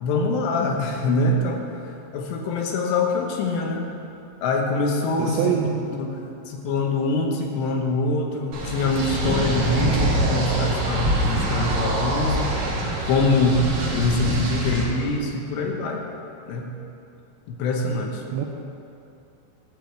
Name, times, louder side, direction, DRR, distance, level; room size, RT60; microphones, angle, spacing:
voice 1, 0.0-3.9 4.4-5.5 5.9-6.2 6.5-12.5 13.1-16.0 16.5-16.7 17.5-18.2, left 2 dB, 75° left, 1 dB, 3.0 m, -24 dB
voice 2, 5.2-5.7 14.2-14.7 18.3-18.4, right 10 dB, 85° right, 1 dB, 2.2 m, -26 dB
sound 1, 8.5-14.8, right 1 dB, 65° right, 1.5 m, -24 dB
11.5 x 4.8 x 7.9 m, 2.7 s
omnidirectional pair, 5.1 m